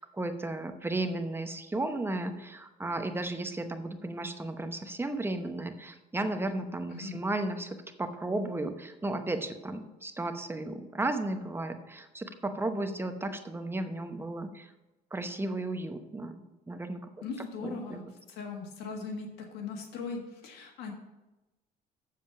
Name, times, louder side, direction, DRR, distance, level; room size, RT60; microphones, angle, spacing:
voice 1, 0.0-14.7 15.1-17.1 17.6-18.0, right 2 dB, 15° right, 7 dB, 0.9 m, -34 dB
voice 2, 17.2-20.9, left 4 dB, 85° left, 2 dB, 1.6 m, -39 dB
7.6 x 7.1 x 5.9 m, 1.0 s
cardioid pair, 110°, 17 cm